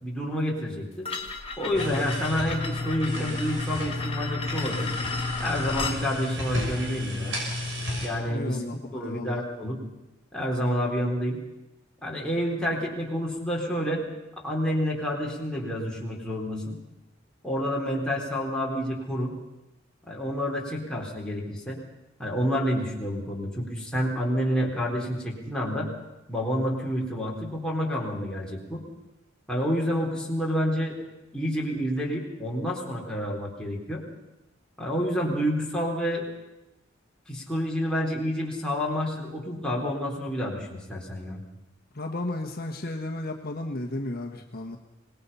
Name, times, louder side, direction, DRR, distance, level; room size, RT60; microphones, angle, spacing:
voice 1, 0.0-1.1 1.6-4.9 5.4-7.4 8.0-8.6 8.9-9.8 10.3-11.4 12.0-14.0 14.4-16.8 17.4-19.3 20.1-21.8 22.2-25.9 26.3-28.8 29.5-31.0 31.3-34.0 34.8-36.3 37.3-41.4, equal, 5° left, -3 dB, 4.1 m, -29 dB
sound 1, 1.0-6.0, left 4 dB, 30° left, 2.4 m, -34 dB
sound 2, 1.7-8.1, left 2 dB, 70° right, 6.7 m, -32 dB
voice 2, 8.3-9.4 41.9-44.8, left 1 dB, 50° left, 3 dB, 1.5 m, -33 dB
25.0 x 20.0 x 5.7 m, 1.0 s
head